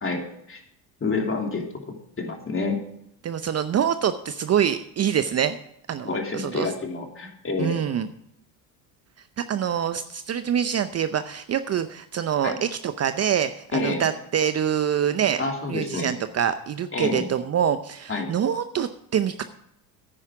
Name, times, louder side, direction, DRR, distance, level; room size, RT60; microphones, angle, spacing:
voice 1, 0.0-0.6 1.0-1.7 2.2-2.8 6.0-7.8 12.4-12.6 13.7-14.1 15.4-16.1 16.9-17.3 18.1-18.3, left 3 dB, 25° left, 2 dB, 3.0 m, -28 dB
voice 2, 3.2-5.6 5.9-6.7 7.6-8.1 9.4-15.4 15.7-19.4, right 9 dB, 35° right, 11 dB, 0.7 m, -25 dB
10.0 x 10.0 x 4.7 m, 0.75 s
hypercardioid pair, 75°, 46 cm